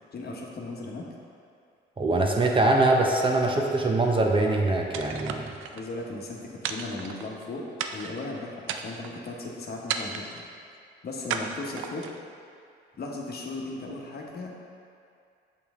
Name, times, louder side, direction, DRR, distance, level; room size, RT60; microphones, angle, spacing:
voice 1, 0.1-1.0 5.7-7.6 7.9-10.4 11.0-12.1 13.0-14.6, left 2 dB, 50° left, -1 dB, 1.1 m, -36 dB
voice 2, 2.0-5.5, right 2 dB, 25° right, 1 dB, 0.7 m, -23 dB
sound 1, 4.9-5.8 6.6-7.4 7.8-8.2 8.6-9.2 9.9-10.5 11.3-12.2, right 7 dB, 80° right, 0.4 m, -34 dB
6.9 x 5.4 x 3.6 m, 2.4 s
cardioid pair, 90°, 20 cm